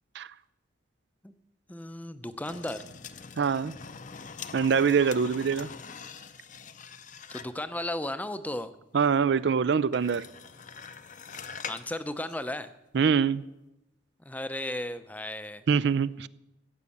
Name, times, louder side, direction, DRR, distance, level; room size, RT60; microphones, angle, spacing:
voice 1, 1.7-2.8 7.3-8.7 11.7-12.7 14.2-15.6, left 1 dB, 10° left, 11 dB, 0.6 m, -35 dB
sound 1, 2.4-7.7 9.9-11.9 12.3-12.4, left 6 dB, 40° left, 0.7 m, -43 dB
voice 2, 3.4-3.7 4.5-5.7 8.9-10.3 12.9-13.4 15.7-16.3, right 6 dB, 60° right, 17 dB, 0.4 m, -24 dB
15.0 x 8.2 x 8.5 m, 0.93 s
head